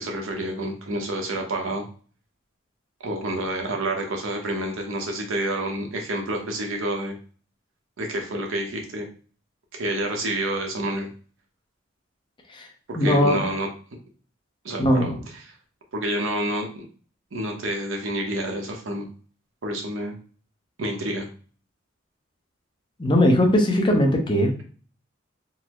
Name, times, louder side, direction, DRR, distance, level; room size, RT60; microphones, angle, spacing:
voice 1, 0.0-1.8 3.0-7.1 8.0-9.1 9.7-11.1 12.9-13.7 14.6-15.2 15.4-15.5 15.9-16.9 17.3-19.1 19.6-20.1 20.8-21.3, right 1 dB, 75° right, 2 dB, 0.8 m, -28 dB
voice 2, 12.9-13.4 14.8-15.2 23.0-24.6, left 1 dB, 25° left, 2 dB, 0.6 m, -20 dB
3.8 x 2.0 x 3.0 m, 0.42 s
head